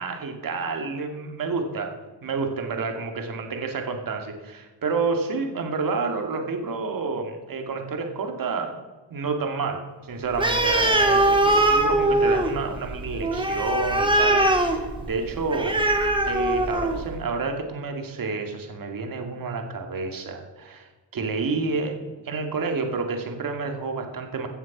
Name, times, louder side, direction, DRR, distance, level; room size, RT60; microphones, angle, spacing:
voice 1, 0.0-1.9 2.2-8.8 9.1-15.8 16.3-24.5, right 4 dB, 50° right, 4 dB, 2.4 m, -29 dB
Animal, 10.3-17.1, right 1 dB, 10° right, 1.9 m, -22 dB
15.5 x 7.3 x 6.1 m, 1.3 s
cardioid pair, 95°, 44 cm